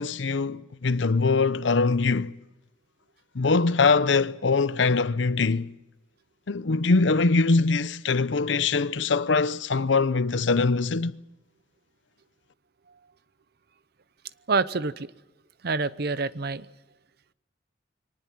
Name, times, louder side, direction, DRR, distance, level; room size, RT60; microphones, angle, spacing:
voice 1, 0.0-2.4 3.3-5.7 6.5-11.1, left 4 dB, 75° left, 0.7 m, -23 dB
voice 2, 14.5-15.1 15.6-16.7, right 4 dB, 55° right, 0.8 m, -26 dB
24.0 x 19.0 x 7.5 m
head